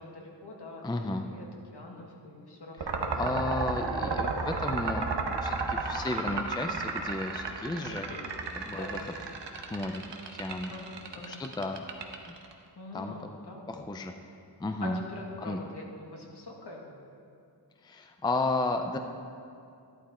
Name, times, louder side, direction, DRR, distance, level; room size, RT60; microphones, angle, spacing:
voice 1, 0.0-3.2 7.5-7.6 7.9-8.3 8.7-9.2 10.7-11.4 12.8-13.8 14.8-16.9, left 2 dB, 65° left, -1 dB, 2.0 m, -44 dB
voice 2, 0.8-1.2 3.1-8.1 8.6-9.0 9.7-10.0 10.3-10.7 11.3-11.8 12.9-13.4 13.7-14.1 14.6-15.0 15.4-15.6 17.8-19.0, left 2 dB, 10° left, 5 dB, 0.5 m, -33 dB
sound 1, 2.8-12.5, right 4 dB, 75° right, 1.2 m, -33 dB
13.5 x 11.5 x 4.3 m, 2.5 s
wide cardioid pair, 145°, 43 cm